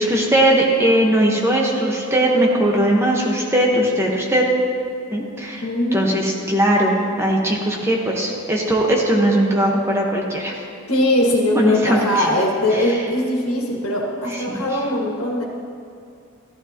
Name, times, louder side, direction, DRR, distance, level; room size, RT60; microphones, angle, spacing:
voice 1, 0.0-4.5 5.1-5.6 5.9-10.5 11.5-12.3 12.7-12.8 14.5-14.6, right 1 dB, 10° right, -2 dB, 1.1 m, -19 dB
voice 2, 5.6-6.1 10.9-15.4, left 1 dB, 90° left, -2 dB, 1.8 m, -20 dB
14.0 x 12.0 x 2.9 m, 2.4 s
head